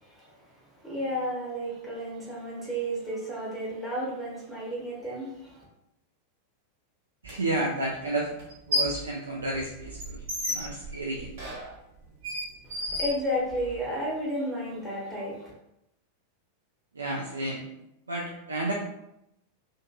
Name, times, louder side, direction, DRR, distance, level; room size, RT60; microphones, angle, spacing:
voice 1, 0.0-0.5 0.8-5.6 12.6-15.5, equal, 5° left, -6 dB, 0.7 m, -32 dB
sound 1, 7.2-7.3 8.4-9.1 9.4-13.8, left 1 dB, 55° right, 1.0 m, -33 dB
voice 2, 7.2-8.4 8.7-11.3 16.9-17.6 18.1-18.7, right 2 dB, 75° right, -2 dB, 0.3 m, -31 dB
2.5 x 2.5 x 2.2 m, 0.83 s
figure-of-eight pair, 90°, 0 cm